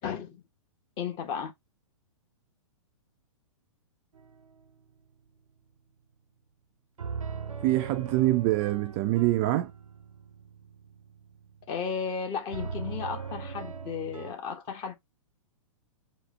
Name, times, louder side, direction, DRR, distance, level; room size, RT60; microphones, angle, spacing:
voice 1, 0.0-0.4 1.0-1.5 11.7-14.9, left 6 dB, 30° left, 1.1 m, -34 dB
sound 1, 4.2-4.7 7.0-11.8 12.5-14.3, right 5 dB, 90° right, 0.6 m, -40 dB
voice 2, 7.6-9.7, right 16 dB, 30° right, 0.4 m, -25 dB
4.1 x 3.0 x 3.0 m
figure-of-eight pair, 110°, 17 cm